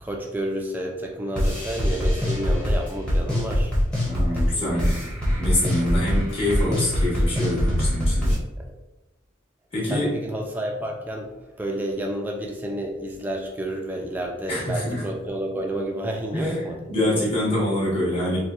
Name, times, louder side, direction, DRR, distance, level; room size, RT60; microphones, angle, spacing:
voice 1, 0.0-3.7 9.9-16.8, right 1 dB, 10° right, 0 dB, 0.3 m, -30 dB
sound 1, 1.4-8.4, equal, 5° left, 0.8 m, -23 dB
voice 2, 4.0-8.4 9.7-10.1 14.5-15.0 16.3-18.4, left 1 dB, 30° left, -6 dB, 1.1 m, -25 dB
4.2 x 2.2 x 2.4 m, 0.97 s
head